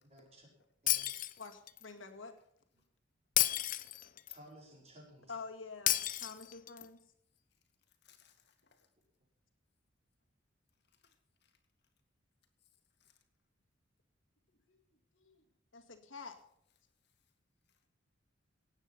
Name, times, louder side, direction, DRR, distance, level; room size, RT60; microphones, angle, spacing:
voice 1, 0.1-0.5 0.8-1.3 4.3-5.5, equal, 35° right, -1 dB, 5.1 m, -57 dB
Shatter, 0.9-1.8 3.4-4.4 5.9-6.9, left 14 dB, 45° left, 0.6 m, -32 dB
voice 2, 1.4-2.4 5.3-7.0 14.5-14.8 15.1-15.4 15.7-16.4, left 4 dB, 80° left, 3 dB, 2.1 m, -48 dB
voice 3, 7.9-8.9 10.9-11.5 13.0-13.2 17.7-17.8, left 7 dB, 60° left, 5 dB, 2.1 m, -69 dB
17.5 x 8.9 x 5.8 m, 0.69 s
head